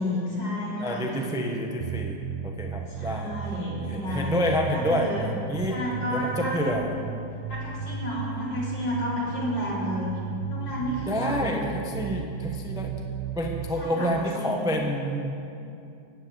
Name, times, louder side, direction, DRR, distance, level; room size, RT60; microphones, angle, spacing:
voice 1, 0.0-1.0 2.9-5.3 5.7-6.8 7.5-10.1 10.5-11.6 13.8-14.7, left 1 dB, 55° left, -6 dB, 4.6 m, -31 dB
voice 2, 0.8-2.2 2.4-3.3 3.9-5.1 5.5-5.8 6.1-6.9 11.1-12.9 13.3-15.3, equal, 5° right, 1 dB, 0.6 m, -28 dB
sound 1, 1.8-13.7, right 6 dB, 90° right, 1.7 m, -35 dB
16.0 x 9.4 x 7.9 m, 2.6 s
omnidirectional pair, 2.3 m